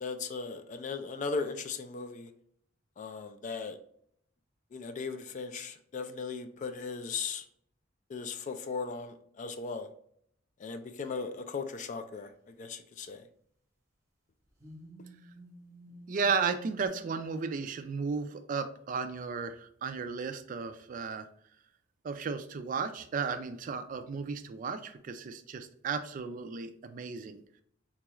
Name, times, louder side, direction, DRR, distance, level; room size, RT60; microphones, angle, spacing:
voice 1, 0.0-2.3 3.0-3.8 4.7-7.5 8.1-9.9 10.6-13.3, left 4 dB, 40° left, 9 dB, 0.3 m, -37 dB
sound 1, 14.6-16.9, right 1 dB, 15° right, 0.8 m, -51 dB
voice 2, 16.1-21.3 22.0-27.4, right 5 dB, 45° right, 9 dB, 0.3 m, -34 dB
4.0 x 2.3 x 2.9 m, 0.67 s
head